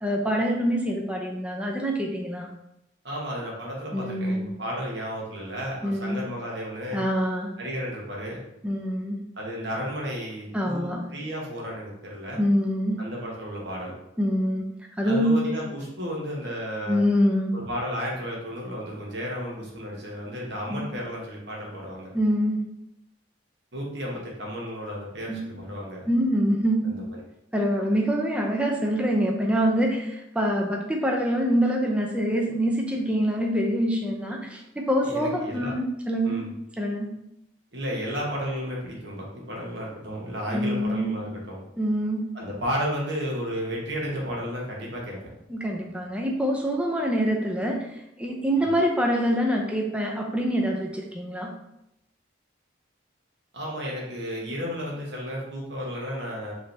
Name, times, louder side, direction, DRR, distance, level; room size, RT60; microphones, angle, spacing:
voice 1, 0.0-2.5 3.9-4.5 5.8-6.2 6.9-7.5 8.6-9.2 10.5-11.0 12.4-13.0 14.2-14.6 15.0-15.4 16.9-17.5 20.7-20.9 22.1-22.6 25.3-25.4 26.1-27.0 27.5-36.4 36.8-37.1 40.5-41.1 41.8-42.3 45.5-47.9 48.2-51.5, equal, 5° right, 0 dB, 0.5 m, -25 dB
voice 2, 3.0-7.0 7.6-8.4 9.4-12.4 13.0-13.9 15.0-17.0 17.5-22.1 23.7-26.1 26.8-27.0 35.0-35.7 36.2-36.5 37.7-41.6 42.3-45.3 48.6-48.7 53.5-56.5, equal, 55° right, -3 dB, 1.2 m, -33 dB
4.8 x 3.0 x 3.3 m, 0.84 s
head